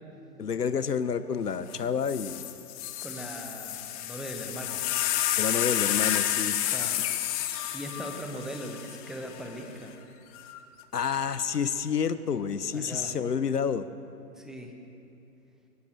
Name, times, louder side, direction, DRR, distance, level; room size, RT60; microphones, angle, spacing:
voice 1, 0.4-2.5 5.4-6.6 10.9-13.9, left 6 dB, 70° left, 13 dB, 1.2 m, -29 dB
sound 1, 1.7-1.8 2.1-9.5 10.3-10.8, left 12 dB, 20° left, 1.1 m, -30 dB
voice 2, 3.0-4.9 6.6-7.0 7.7-9.9 12.7-13.1 14.4-14.7, equal, ahead, 3 dB, 1.1 m, -39 dB
23.5 x 17.5 x 6.7 m, 2.9 s
figure-of-eight pair, 125°, 49 cm